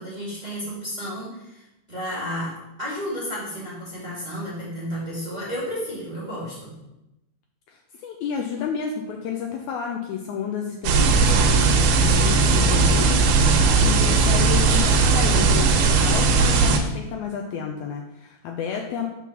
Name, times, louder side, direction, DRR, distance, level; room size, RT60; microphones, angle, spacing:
voice 1, 0.0-1.6 1.9-6.7, equal, 15° right, -8 dB, 1.6 m, -32 dB
voice 2, 7.7-13.5 13.8-19.1, left 7 dB, 80° left, 2 dB, 1.8 m, -31 dB
sound 1, 10.8-16.8, right 4 dB, 90° right, 2.3 m, -18 dB
5.3 x 4.6 x 5.8 m, 0.92 s
omnidirectional pair, 3.8 m